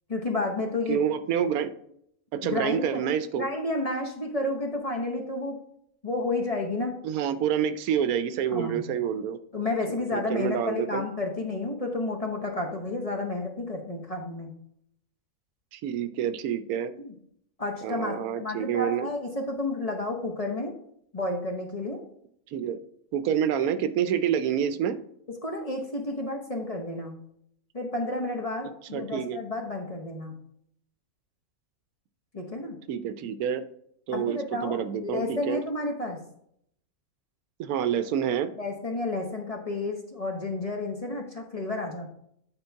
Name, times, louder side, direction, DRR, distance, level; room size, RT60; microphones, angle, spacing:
voice 1, 0.1-1.0 2.4-3.0 3.3-5.6 6.0-6.9 8.5-8.9 9.5-14.5 17.0-17.1 17.6-20.7 21.1-22.0 25.4-27.2 27.7-30.4 32.3-32.8 34.1-36.2 38.6-42.1, left 2 dB, 30° left, 2 dB, 0.9 m, -31 dB
voice 2, 0.9-1.7 2.3-3.5 7.0-9.4 10.1-11.0 15.7-16.9 17.8-19.1 22.5-22.8 23.1-25.0 28.9-29.4 32.9-33.6 34.1-35.6 37.6-38.5, right 9 dB, 85° right, 12 dB, 1.1 m, -28 dB
8.9 x 3.8 x 4.5 m, 0.69 s
omnidirectional pair, 1.5 m